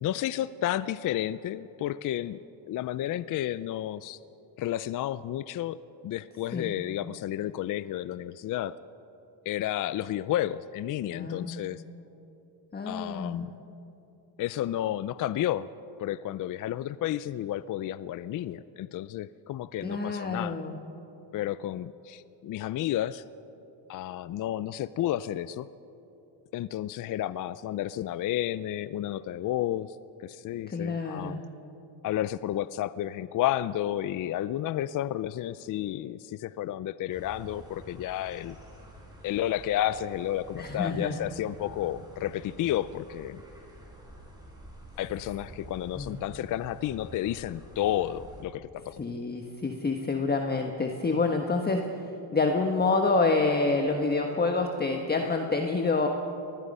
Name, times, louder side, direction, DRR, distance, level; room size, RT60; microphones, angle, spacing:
voice 1, 0.0-2.4 2.7-4.2 4.6-5.8 6.0-8.7 9.5-11.8 12.9-13.5 14.4-15.7 16.0-20.6 21.3-23.2 23.9-25.7 26.5-31.4 32.0-38.6 39.2-43.4 45.0-49.0, left 12 dB, 40° left, 16 dB, 0.5 m, -31 dB
voice 2, 11.1-11.5 12.7-13.5 19.8-20.8 30.7-31.4 40.5-41.2 45.9-46.2 49.0-56.1, left 3 dB, 20° left, 3 dB, 1.3 m, -27 dB
sound 1, 37.1-48.4, right 1 dB, 10° right, 5.9 m, -49 dB
25.0 x 20.0 x 5.5 m, 3.0 s
cardioid pair, 115°, 49 cm